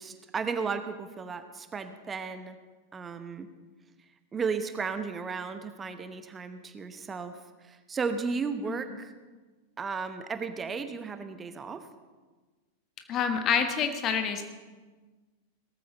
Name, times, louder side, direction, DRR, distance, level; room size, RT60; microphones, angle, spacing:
voice 1, 0.0-2.6 2.9-3.5 4.3-9.1 9.8-11.9, right 5 dB, 20° right, 9 dB, 1.0 m, -34 dB
voice 2, 13.1-14.4, left 7 dB, 30° left, 7 dB, 1.4 m, -27 dB
18.0 x 14.0 x 4.1 m, 1.3 s
figure-of-eight pair, 90°, 0 cm